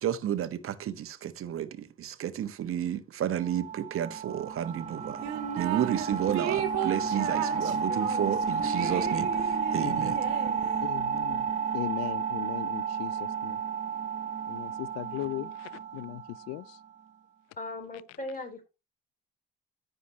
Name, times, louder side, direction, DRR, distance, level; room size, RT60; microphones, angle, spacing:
voice 1, 0.0-5.2 5.5-9.3 9.7-10.1, right 10 dB, 45° right, 1.2 m, -31 dB
sound 1, 3.4-16.8, right 5 dB, 25° right, 1.5 m, -32 dB
sound 2, 5.2-6.1 6.3-11.0, right 12 dB, 70° right, 1.7 m, -35 dB
voice 2, 9.8-10.1 10.8-13.6 14.5-16.8, left 18 dB, 60° left, 0.5 m, -38 dB
voice 3, 17.6-18.7, left 2 dB, 30° left, 3.7 m, -39 dB
14.5 x 5.1 x 2.9 m
hypercardioid pair, 55°, 30 cm